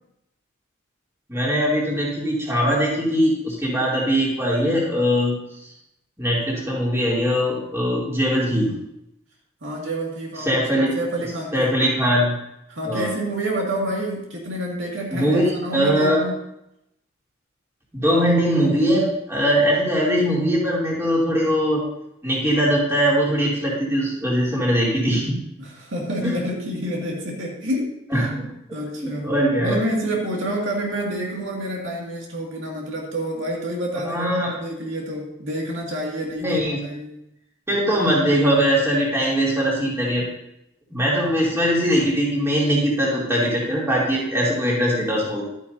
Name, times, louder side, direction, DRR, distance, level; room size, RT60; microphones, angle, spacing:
voice 1, 1.3-5.4 6.2-8.7 10.4-10.9 11.5-12.4 12.8-13.1 15.1-15.4 15.7-16.2 17.9-21.8 22.2-25.4 26.2-26.4 28.1-28.5 29.0-29.8 34.1-34.5 36.4-36.8 37.7-40.3 40.9-45.4, equal, 15° right, -5 dB, 2.9 m, -21 dB
voice 2, 9.6-10.6 10.9-11.7 12.7-16.3 25.6-28.3 28.7-34.3 34.6-37.2, right 1 dB, 70° right, -2 dB, 2.2 m, -28 dB
12.0 x 9.9 x 2.7 m, 0.83 s
head